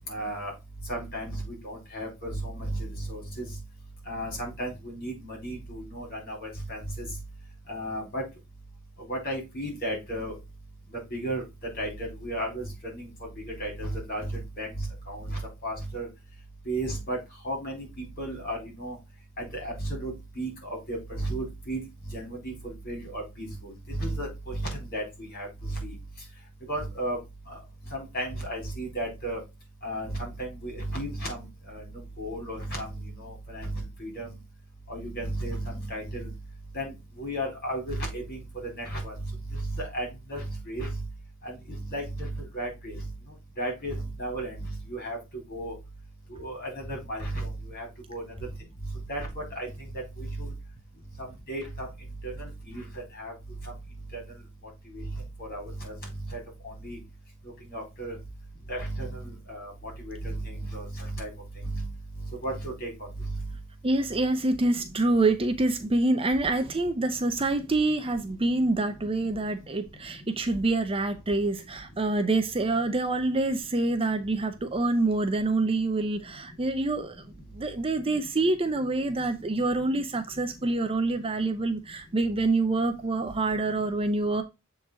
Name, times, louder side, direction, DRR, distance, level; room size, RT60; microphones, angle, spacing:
voice 1, 0.1-0.5 0.9-3.5 4.1-7.1 7.7-8.2 9.1-10.3 11.1-11.4 11.8-13.1 13.6-16.1 16.7-17.2 17.4-19.0 19.4-21.8 22.1-25.9 26.7-27.2 27.5-27.6 27.9-29.4 29.8-31.8 32.2-34.3 34.9-36.3 36.7-41.0 41.4-43.1 43.6-45.2 45.5-45.7 46.3-48.2 49.1-49.7 50.2-50.5 51.5-51.9 52.2-53.3 53.6-53.7 54.1-54.2 54.9-55.0 55.4-56.0 56.3-57.0 57.7-58.2 58.7-61.3 61.6-61.9 62.4-62.9 63.2-63.4, right 1 dB, 45° left, 4.2 m, -34 dB
voice 2, 63.8-77.2 77.5-84.4, right 2 dB, 25° right, 0.6 m, -26 dB
7.4 x 3.9 x 4.0 m
head